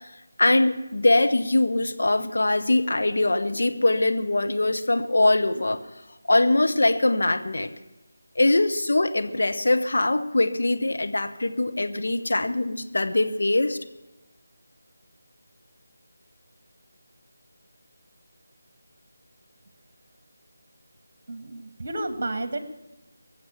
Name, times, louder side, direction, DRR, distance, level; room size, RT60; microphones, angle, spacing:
voice 1, 0.4-5.8 6.3-7.7 8.4-13.8, left 2 dB, 60° left, 6 dB, 1.1 m, -22 dB
voice 2, 21.3-22.6, right 2 dB, 40° right, 10 dB, 1.7 m, -31 dB
21.5 x 7.3 x 7.2 m, 1.0 s
figure-of-eight pair, 160°, 0 cm